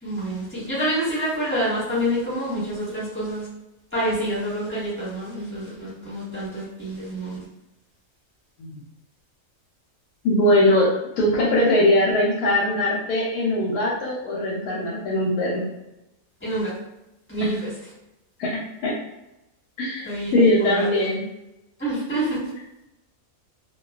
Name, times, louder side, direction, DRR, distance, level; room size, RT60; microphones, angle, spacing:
voice 1, 0.0-3.5 3.9-7.4 16.4-16.7 17.3-17.7 20.0-20.3 20.6-20.9 21.8-22.4, right 1 dB, 10° left, -8 dB, 1.0 m, -27 dB
voice 2, 10.2-10.9 11.2-15.6 18.4-18.9 19.8-21.2, left 1 dB, 85° left, -5 dB, 1.1 m, -21 dB
2.4 x 2.2 x 2.3 m, 0.92 s
omnidirectional pair, 1.5 m